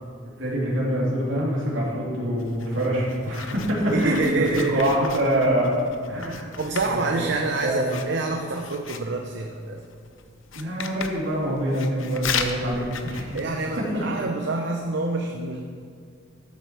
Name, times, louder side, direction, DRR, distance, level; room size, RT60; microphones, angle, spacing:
voice 1, 0.4-5.7 6.1-6.5 6.9-7.0 7.6-7.8 10.5-13.4, equal, 80° right, -5 dB, 3.1 m, -25 dB
Writing, 2.4-14.0, left 6 dB, 85° left, 0.8 m, -36 dB
voice 2, 3.8-4.9 6.6-9.8 13.3-15.6, right 3 dB, 60° right, 2 dB, 0.7 m, -27 dB
12.5 x 7.8 x 4.8 m, 2.2 s
head